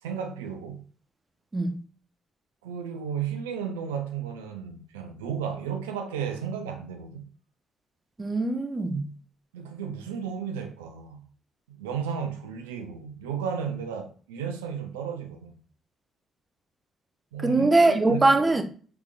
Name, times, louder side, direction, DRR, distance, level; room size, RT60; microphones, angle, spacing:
voice 1, 0.0-0.8 2.6-7.3 9.5-11.3 11.7-15.6 17.3-18.4, right 7 dB, 85° right, 0.4 m, -34 dB
voice 2, 8.2-9.0 17.4-18.6, right 2 dB, 30° right, 0.6 m, -21 dB
3.5 x 3.4 x 2.4 m
hypercardioid pair, 45°, 0 cm